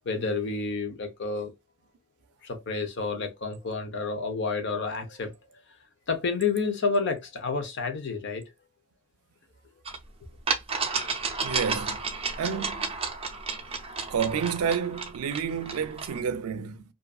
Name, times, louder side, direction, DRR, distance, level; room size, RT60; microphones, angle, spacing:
voice 1, 0.1-1.5 2.4-5.6 6.1-8.5, left 4 dB, 55° left, 0.7 m, -30 dB
sound 1, 9.9-10.0 10.5-16.2, right 4 dB, 25° right, 0.5 m, -32 dB
voice 2, 11.4-12.1 12.4-12.9 14.1-16.8, right 7 dB, 90° right, 0.4 m, -30 dB
2.5 x 2.5 x 2.3 m
head